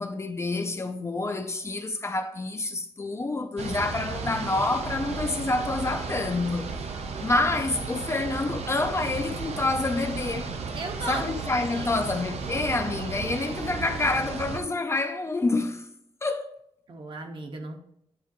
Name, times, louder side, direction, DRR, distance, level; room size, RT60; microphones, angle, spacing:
voice 1, 0.0-6.7 7.2-10.5 11.1-15.9 16.2-16.5, left 2 dB, 25° left, 0.4 m, -28 dB
sound 1, 3.6-14.6, right 4 dB, 80° right, 0.7 m, -34 dB
voice 2, 10.7-11.2 11.5-11.9 16.9-17.8, right 2 dB, 50° right, 0.9 m, -36 dB
9.2 x 3.7 x 3.0 m
wide cardioid pair, 145°, 11 cm